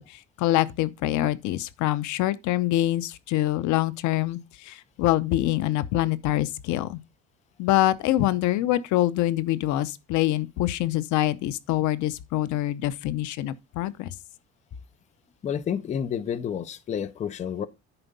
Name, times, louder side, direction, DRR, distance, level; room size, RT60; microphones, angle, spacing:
voice 1, 0.0-7.0 7.6-14.1, left 15 dB, 80° left, 0.8 m, -25 dB
voice 2, 15.4-17.7, left 8 dB, 25° left, 0.5 m, -30 dB
10.0 x 4.5 x 5.2 m
cardioid pair, 180°, 29 cm